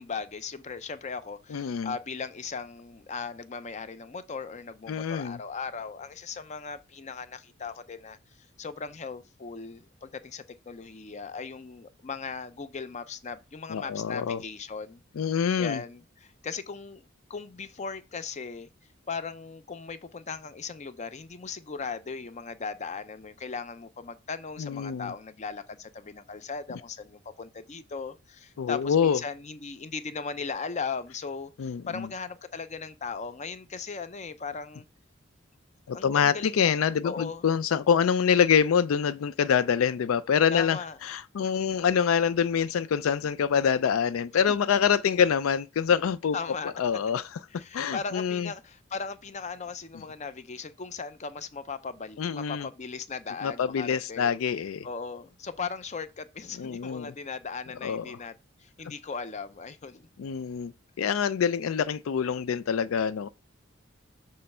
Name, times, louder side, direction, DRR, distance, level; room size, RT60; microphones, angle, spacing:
voice 1, 0.0-8.2 8.6-15.0 15.6-17.0 17.3-18.7 19.1-34.8 35.9-36.7 37.0-37.4 40.5-41.0 46.3-46.7 47.5-54.3 54.8-58.3 58.6-60.1, left 5 dB, 35° left, 0.5 m, -38 dB
voice 2, 1.5-1.9 4.9-5.4 13.7-14.4 15.2-15.8 24.6-25.1 28.6-29.2 31.6-32.1 35.9-46.4 46.6-47.4 47.7-48.5 52.2-52.7 53.4-54.9 56.6-57.1 57.8-58.2 60.2-60.7 61.0-63.3, left 7 dB, 85° left, 0.4 m, -26 dB
6.7 x 3.2 x 5.4 m
head